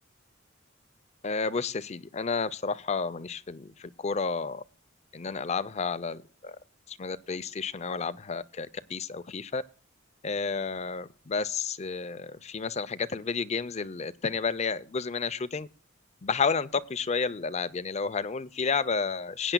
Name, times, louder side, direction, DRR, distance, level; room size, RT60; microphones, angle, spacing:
voice 1, 1.2-4.6 5.1-6.6 6.9-9.6 10.2-15.7 16.2-19.5, left 5 dB, 35° left, 0.5 m, -31 dB
21.0 x 9.1 x 2.3 m
head